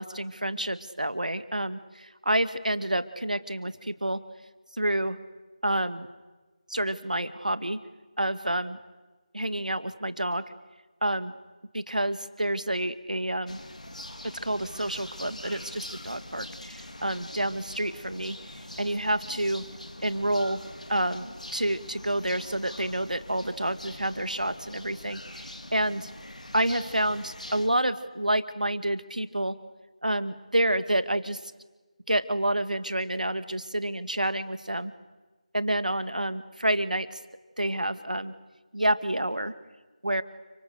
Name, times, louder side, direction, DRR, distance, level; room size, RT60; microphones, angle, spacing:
voice 1, 0.0-4.2 4.7-5.2 5.6-6.1 6.7-7.8 8.2-8.8 9.3-10.4 11.0-11.3 11.7-13.6 14.4-18.4 18.8-19.6 20.0-20.6 20.9-26.1 26.5-29.6 30.0-31.5 32.1-34.9 35.5-37.2 37.6-38.3 38.7-39.5 40.0-40.2, right 1 dB, 85° right, 11 dB, 2.0 m, -28 dB
sound 1, 13.5-27.7, left 1 dB, 70° left, 3.8 m, -43 dB
29.5 x 26.0 x 6.8 m, 1.2 s
figure-of-eight pair, 165°, 4 cm